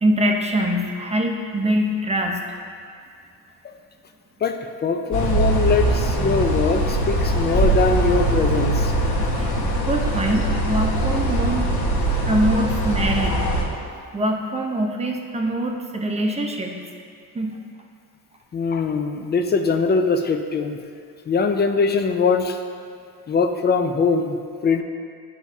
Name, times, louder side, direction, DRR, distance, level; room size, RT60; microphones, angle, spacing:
voice 1, 0.0-2.4 9.8-11.7 12.3-13.5 14.1-16.8 17.3-17.6, right 1 dB, 15° right, 1 dB, 0.7 m, -23 dB
voice 2, 4.4-8.9 18.5-20.8 21.3-22.6 23.3-24.4 24.6-24.8, left 4 dB, 25° left, 6 dB, 0.4 m, -21 dB
sound 1, 5.1-13.6, right 1 dB, 65° left, 1.5 m, -21 dB
11.0 x 4.7 x 2.7 m, 2.3 s
cardioid pair, 115°, 40 cm